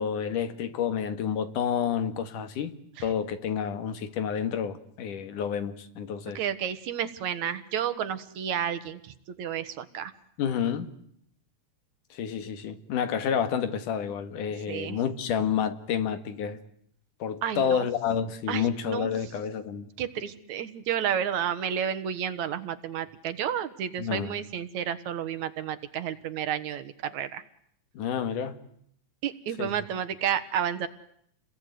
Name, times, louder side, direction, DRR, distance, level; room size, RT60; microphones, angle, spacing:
voice 1, 0.0-2.7 3.0-6.4 10.4-10.9 12.1-16.6 17.2-19.9 24.0-24.4 28.0-28.6 29.6-29.7, left 7 dB, 85° left, 3.4 m, -29 dB
voice 2, 6.3-10.1 14.7-15.0 17.4-17.9 18.5-19.2 20.0-27.4 29.2-30.9, right 9 dB, 70° right, 2.7 m, -31 dB
29.5 x 21.5 x 9.5 m
omnidirectional pair, 3.5 m